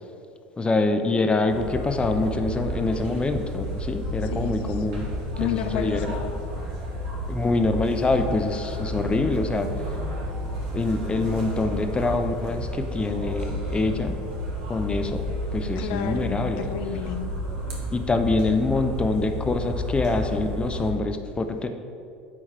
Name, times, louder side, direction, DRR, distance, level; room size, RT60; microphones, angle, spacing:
voice 1, 0.6-5.1 5.4-6.0 7.3-9.7 10.7-14.2 14.7-15.2 15.5-16.7 17.9-21.7, left 3 dB, 20° left, 7 dB, 0.7 m, -25 dB
sound 1, 1.5-20.9, equal, 70° right, 1.8 m, -31 dB
voice 2, 4.3-5.0 5.4-6.4 15.8-17.3, left 9 dB, 65° left, 7 dB, 0.4 m, -32 dB
9.3 x 3.2 x 6.6 m, 2.4 s
hypercardioid pair, 75°, 6 cm